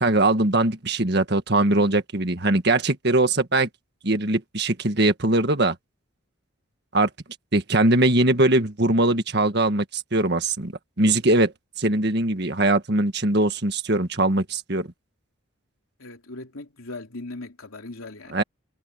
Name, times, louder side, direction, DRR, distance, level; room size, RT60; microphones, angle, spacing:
voice 1, 0.0-3.7 4.0-5.8 6.9-7.1 7.5-10.7 11.0-11.5 11.8-14.9 18.3-18.4, right 2 dB, 50° right, 1.7 m, -21 dB
voice 2, 16.0-18.4, left 2 dB, 80° left, 3.0 m, -39 dB
head